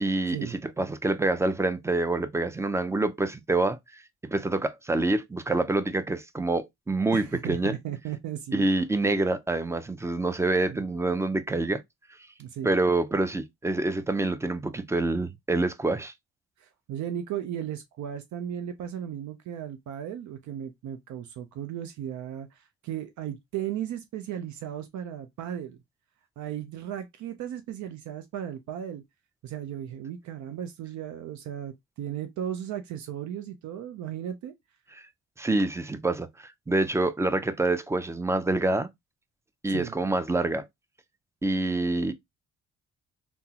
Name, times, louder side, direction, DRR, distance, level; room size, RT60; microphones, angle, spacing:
voice 1, 0.0-3.8 4.3-7.7 8.5-11.8 12.6-16.1 35.0-35.1 35.4-38.9 39.6-40.7 41.4-42.1, right 2 dB, 10° right, 0.3 m, -26 dB
voice 2, 7.1-8.7 10.7-10.8 12.4-12.8 16.6-25.8 26.4-29.0 29.4-34.5 39.6-39.9, right 10 dB, 70° right, 0.5 m, -36 dB
3.5 x 2.0 x 2.7 m
cardioid pair, 90°, 30 cm